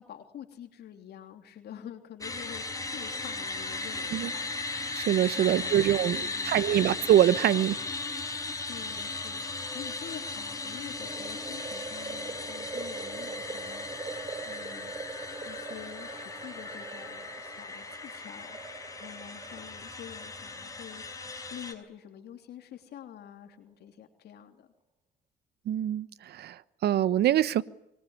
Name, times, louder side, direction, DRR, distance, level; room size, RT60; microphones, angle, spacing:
voice 1, 0.0-6.9 8.5-13.9 14.4-18.6 18.9-24.7, left 10 dB, 65° left, 6 dB, 3.2 m, -47 dB
sound 1, 2.2-21.7, left 3 dB, 20° left, 5.7 m, -37 dB
voice 2, 4.9-7.8 25.7-27.6, right 11 dB, 65° right, 18 dB, 1.1 m, -24 dB
sound 2, 10.9-21.2 21.6-21.7, right 4 dB, 30° right, 5.3 m, -43 dB
25.0 x 22.5 x 9.8 m, 0.83 s
supercardioid pair, 70°, 18 cm